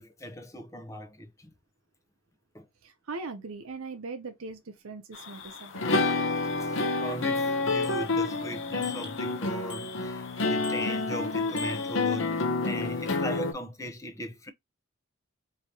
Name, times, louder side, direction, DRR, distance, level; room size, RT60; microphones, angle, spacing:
voice 1, 0.0-1.5 2.5-2.6 6.6-14.5, equal, 15° left, 0.7 m, -38 dB
voice 2, 2.8-5.9, right 3 dB, 80° right, 0.6 m, -40 dB
sound 1, 5.1-13.5, left 3 dB, 65° left, 0.8 m, -29 dB
Bicycle bell, 7.8-8.4 8.8-9.3 9.7-10.3 10.6-11.2 11.6-12.3, left 5 dB, 5° right, 1.3 m, -46 dB
4.8 x 2.7 x 2.8 m
head